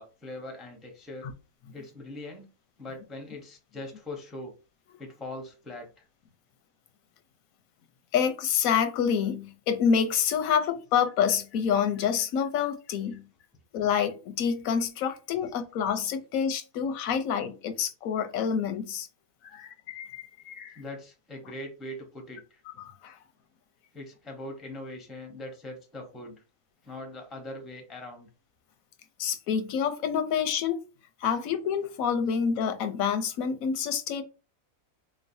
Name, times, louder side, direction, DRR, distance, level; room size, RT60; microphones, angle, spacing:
voice 1, 0.0-1.3 1.7-2.5 2.8-4.5 5.0-5.9 15.4-15.5 17.1-17.2 20.8-22.6 23.9-26.4 26.8-28.3, left 1 dB, ahead, 0.4 m, -41 dB
voice 2, 8.1-13.3 13.7-19.1 19.4-20.8 22.7-23.2 29.2-30.8 31.2-34.2, left 7 dB, 85° left, 1.0 m, -27 dB
3.5 x 3.1 x 2.6 m
omnidirectional pair, 1.4 m